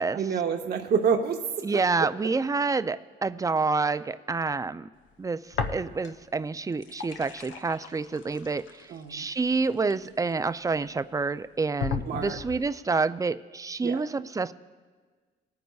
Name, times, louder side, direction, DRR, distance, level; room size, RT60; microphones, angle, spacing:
voice 1, 0.1-1.4 1.7-1.8 8.9-9.3 12.1-12.4 13.8-14.0, right 6 dB, 55° right, 4 dB, 0.8 m, -27 dB
voice 2, 1.6-4.9 5.2-14.5, right 4 dB, 15° right, 13 dB, 0.3 m, -28 dB
sound 1, 5.5-6.3 6.6-10.6 11.2-11.3 11.8-12.7, left 6 dB, 75° left, 0.8 m, -36 dB
20.5 x 9.3 x 2.3 m, 1.5 s
cardioid pair, 90°, 20 cm